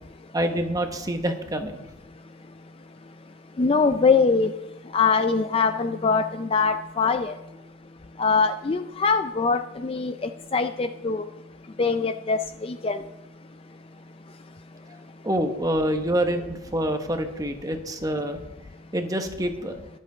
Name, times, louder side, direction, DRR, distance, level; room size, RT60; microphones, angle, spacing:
voice 1, 0.3-1.8 15.2-18.4 18.9-19.8, right 1 dB, 15° right, 6 dB, 0.9 m, -26 dB
voice 2, 3.6-4.5 4.9-7.3 8.2-10.1 10.5-11.2 11.8-12.4 12.8-13.0, left 4 dB, 25° left, 9 dB, 0.3 m, -22 dB
22.0 x 7.5 x 3.8 m, 0.98 s
head